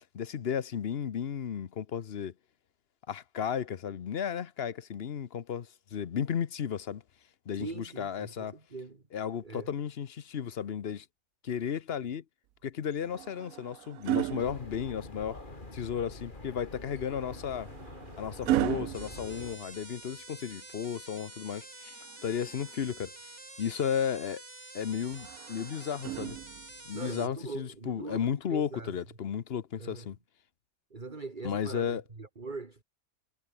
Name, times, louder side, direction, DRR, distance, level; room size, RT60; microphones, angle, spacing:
voice 1, 0.1-2.3 3.1-7.0 7.5-8.5 9.1-11.0 11.4-12.2 12.6-15.4 15.7-17.7 18.2-23.1 23.6-24.4 24.7-26.4 26.9-30.2 31.4-32.0, left 8 dB, 50° left, 1.0 m, -34 dB
voice 2, 7.6-9.0 9.4-9.7 26.9-29.0 29.8-30.1 30.9-32.8, right 3 dB, 35° right, 2.2 m, -42 dB
sound 1, 12.9-15.4 17.0-20.2 21.9-23.1 25.1-26.9 28.1-28.3, right 14 dB, 80° right, 1.1 m, -36 dB
sound 2, 14.4-19.6, left 2 dB, 35° left, 3.7 m, -46 dB
sound 3, 18.9-27.3, right 2 dB, 55° right, 5.3 m, -48 dB
omnidirectional pair, 1.4 m